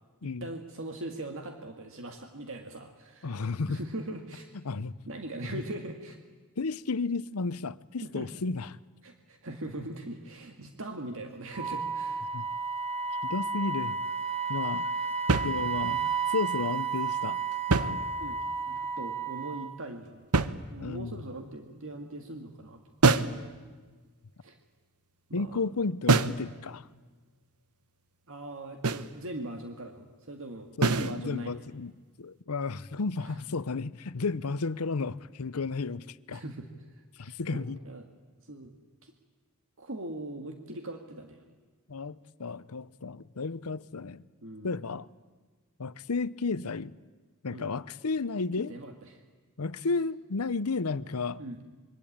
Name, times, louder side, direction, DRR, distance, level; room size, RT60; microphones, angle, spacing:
voice 1, 0.2-3.4 3.7-4.5 5.1-6.2 8.0-8.3 9.0-12.3 18.2-18.4 18.7-20.3 20.7-22.8 24.4-24.6 25.3-25.7 28.3-31.6 33.2-33.4 36.3-36.7 37.2-38.1 38.4-38.7 39.0-39.1 39.8-41.5 44.4-44.8 47.5-47.7 48.7-49.2 51.4-51.6, right 1 dB, 65° right, 2.0 m, -41 dB
voice 2, 3.2-3.8 4.6-4.9 5.4-5.6 6.6-8.7 12.3-12.5 13.2-14.0 14.5-14.9 15.4-17.4 17.7-18.1 20.8-21.2 25.3-26.9 30.8-31.9 32.2-36.4 37.2-37.8 41.9-44.2 44.6-45.1 45.8-46.9 47.4-48.7 49.6-51.4, left 4 dB, 75° left, 0.8 m, -33 dB
Wind instrument woodwind instrument, 11.5-19.8, right 5 dB, 25° right, 1.5 m, -32 dB
sound 1, 15.3-16.1 17.5-18.5 20.3-21.1 23.0-23.4 26.1-26.5 28.8-29.2 30.8-31.2, right 3 dB, 85° right, 1.0 m, -26 dB
26.0 x 23.0 x 8.7 m
head